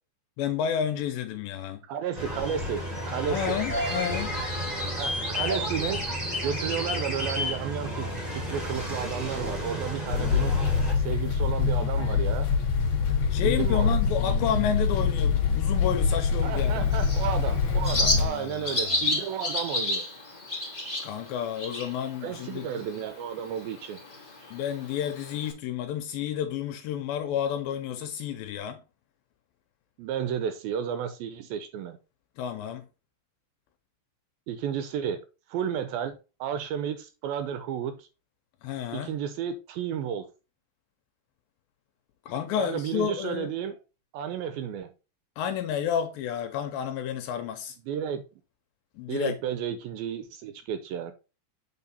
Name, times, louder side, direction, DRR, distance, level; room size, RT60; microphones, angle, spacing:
voice 1, 0.4-1.8 3.3-4.3 13.3-16.9 18.0-19.1 21.0-22.7 24.5-28.8 32.4-32.9 38.6-39.2 42.3-43.5 45.4-47.8 49.0-49.4, left 9 dB, 80° left, 2.2 m, -31 dB
voice 2, 1.9-3.6 5.0-6.0 6.4-10.6 11.0-12.5 13.4-14.0 16.4-20.1 22.2-24.0 30.0-32.0 34.5-35.2 35.5-38.1 38.9-40.3 42.6-43.8 44.1-44.9 47.9-48.2 49.1-51.1, right 8 dB, 80° right, 2.2 m, -32 dB
sound 1, 2.1-10.9, equal, 20° right, 1.0 m, -31 dB
sound 2, 10.1-18.3, left 5 dB, 65° left, 1.3 m, -25 dB
Bird, 16.5-25.5, left 2 dB, 15° left, 1.8 m, -32 dB
7.7 x 4.2 x 4.2 m
omnidirectional pair, 4.6 m